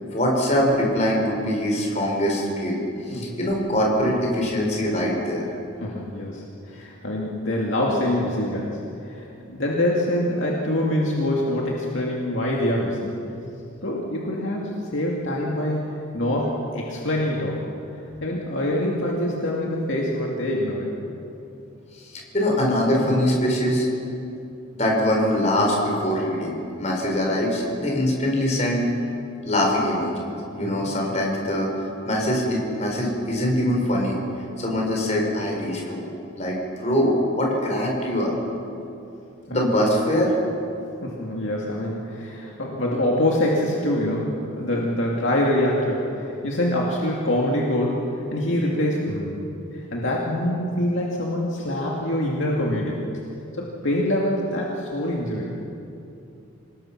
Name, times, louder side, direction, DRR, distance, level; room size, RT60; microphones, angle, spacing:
voice 1, 0.1-2.8 3.1-5.4 22.0-23.9 24.7-28.9 29.4-30.1 30.5-34.2 34.6-36.1 36.4-38.3 39.5-40.3, equal, 35° left, -1 dB, 4.5 m, -23 dB
voice 2, 5.8-13.2 13.8-15.9 16.1-17.6 18.2-20.9 30.6-30.9 41.0-53.0 53.5-55.5, left 1 dB, 60° left, -3 dB, 2.4 m, -25 dB
26.5 x 19.5 x 6.0 m, 2.7 s
head